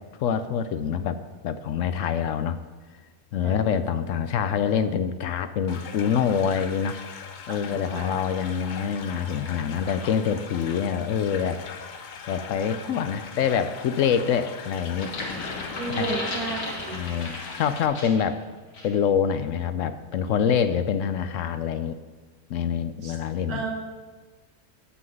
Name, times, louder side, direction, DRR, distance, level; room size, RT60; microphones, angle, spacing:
voice 1, 0.2-2.6 3.3-7.0 7.5-11.6 12.3-15.1 16.0-16.2 16.9-18.4 18.8-22.0 22.5-23.7, left 7 dB, 70° left, 11 dB, 0.9 m, -26 dB
voice 2, 3.4-3.8 7.5-8.1 15.8-16.6 16.9-17.0 23.0-23.2 23.5-23.7, right 3 dB, 85° right, 1 dB, 2.2 m, -33 dB
sound 1, 5.7-17.9, left 6 dB, 50° left, 0.5 m, -41 dB
sound 2, 14.9-18.3 18.7-19.0, left 2 dB, 85° left, 2.2 m, -35 dB
8.3 x 5.8 x 7.6 m, 1.4 s
omnidirectional pair, 1.5 m